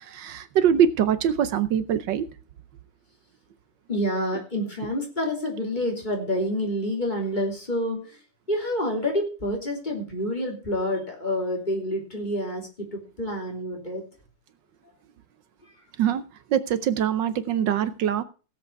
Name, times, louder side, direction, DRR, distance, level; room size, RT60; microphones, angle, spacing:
voice 1, 0.0-2.3 16.0-16.2 16.5-18.2, right 9 dB, 75° right, 1.4 m, -23 dB
voice 2, 3.9-8.2 8.5-14.0, left 1 dB, 25° left, 3.4 m, -28 dB
16.5 x 7.9 x 4.7 m
omnidirectional pair, 2.0 m